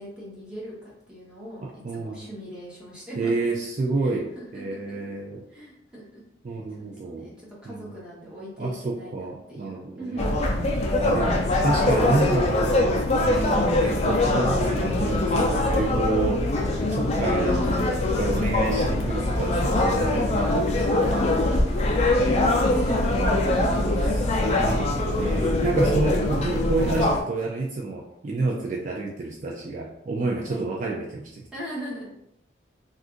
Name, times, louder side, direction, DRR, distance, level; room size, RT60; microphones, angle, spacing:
voice 1, 0.0-3.3 4.0-5.0 5.5-6.2 6.5-10.6 16.8-17.4 20.1-20.5 21.0-23.6 26.8-27.0 30.5-30.7 31.5-32.2, right 1 dB, 5° right, -7 dB, 1.0 m, -40 dB
voice 2, 1.8-2.2 3.2-5.4 6.4-7.3 7.7-7.9 8.6-10.3 10.7-11.3 11.6-16.4 16.9-20.5 20.8-21.1 23.1-23.5 24.0-24.3 24.6-31.4, right 3 dB, 45° right, -2 dB, 0.4 m, -29 dB
sound 1, 10.2-27.2, left 2 dB, 35° left, 0.4 m, -23 dB
2.6 x 2.4 x 3.7 m, 0.80 s
head